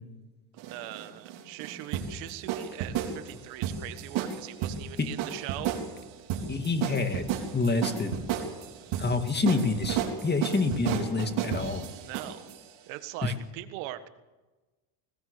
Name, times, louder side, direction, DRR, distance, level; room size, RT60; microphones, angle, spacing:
sound 1, 0.6-12.6, right 9 dB, 65° right, 3.8 m, -33 dB
voice 1, 0.7-5.8 12.0-12.5 12.9-14.1, right 15 dB, 80° right, 11 dB, 1.7 m, -41 dB
voice 2, 6.5-7.3 7.5-8.2 9.0-11.9 13.2-13.3, left 3 dB, 20° left, 7 dB, 2.2 m, -27 dB
21.5 x 19.0 x 6.8 m, 1.2 s
supercardioid pair, 105°, 49 cm